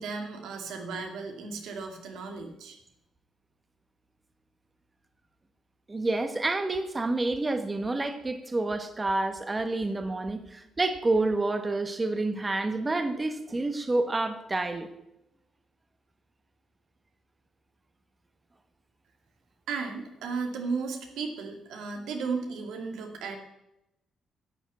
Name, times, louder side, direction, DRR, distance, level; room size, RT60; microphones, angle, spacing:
voice 1, 0.0-2.8 19.7-23.4, right 4 dB, 85° right, 3 dB, 2.3 m, -35 dB
voice 2, 5.9-14.9, right 2 dB, 20° right, 8 dB, 1.1 m, -28 dB
11.5 x 7.2 x 8.0 m, 0.87 s
cardioid pair, 90°, 0 cm